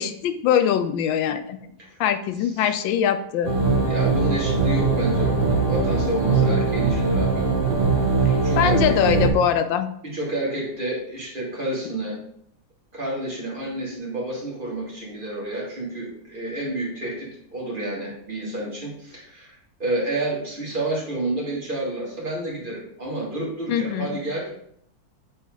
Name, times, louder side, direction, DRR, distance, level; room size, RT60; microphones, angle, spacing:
voice 1, 0.0-1.7 2.0-3.5 8.2-9.9 23.7-24.2, left 9 dB, 85° left, 9 dB, 1.3 m, -22 dB
sound 1, 3.4-9.3, right 4 dB, 60° right, 2.0 m, -21 dB
voice 2, 3.9-7.5 8.4-9.3 10.0-12.2 12.9-19.5 19.8-24.5, right 2 dB, 25° right, -4 dB, 2.0 m, -30 dB
7.2 x 4.2 x 3.7 m, 0.67 s
omnidirectional pair, 2.0 m